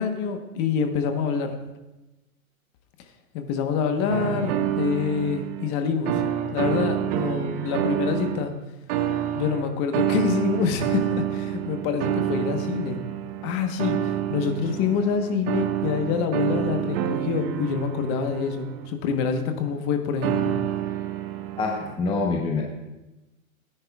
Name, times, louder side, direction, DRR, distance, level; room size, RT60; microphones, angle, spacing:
voice 1, 0.0-1.5 3.3-6.2 6.5-8.5 9.3-13.0 13.4-20.5, left 6 dB, 35° left, 6 dB, 1.2 m, -26 dB
sound 1, 4.1-5.7 6.1-8.5 8.9-18.9 20.2-22.0, right 11 dB, 30° right, 0.6 m, -28 dB
voice 2, 21.6-22.6, left 3 dB, 10° left, 0 dB, 0.8 m, -25 dB
17.0 x 10.0 x 2.4 m, 1.0 s
hypercardioid pair, 135°, 42 cm